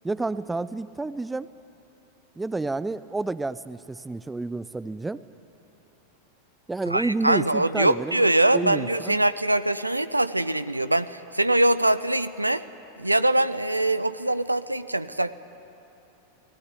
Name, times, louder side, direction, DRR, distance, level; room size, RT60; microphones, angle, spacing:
voice 1, 0.0-1.5 2.4-5.2 6.7-8.3 8.5-9.2, right 3 dB, 10° right, 17 dB, 0.6 m, -30 dB
voice 2, 6.9-12.6 13.0-15.3, right 1 dB, 85° right, 14 dB, 0.7 m, -23 dB
30.0 x 19.0 x 10.0 m, 2.8 s
figure-of-eight pair, 90°, 0 cm